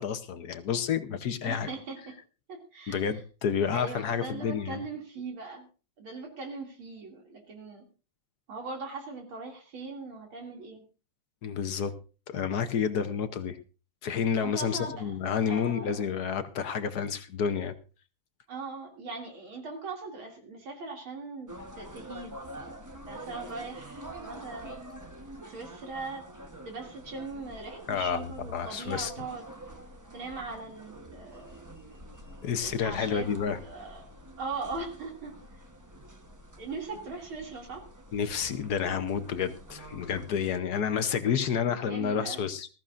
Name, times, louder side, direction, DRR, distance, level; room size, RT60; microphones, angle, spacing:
voice 1, 0.0-1.7 2.9-4.8 11.4-11.9 12.3-13.6 14.0-17.7 27.9-28.2 28.5-29.1 32.4-33.6 38.1-42.7, left 7 dB, 60° left, 10 dB, 1.1 m, -30 dB
voice 2, 1.4-2.2 2.5-3.1 3.7-5.7 6.0-7.8 8.5-10.8 14.4-15.1 15.5-16.1 18.5-22.4 23.1-24.7 25.5-26.3 26.6-29.5 30.1-31.7 32.6-34.1 34.4-35.6 36.6-37.9 41.8-42.4, right 3 dB, 80° right, 1 dB, 3.3 m, -40 dB
sound 1, 21.5-40.6, right 1 dB, 20° right, 0.4 m, -47 dB
19.5 x 14.0 x 2.5 m, 0.34 s
omnidirectional pair, 2.3 m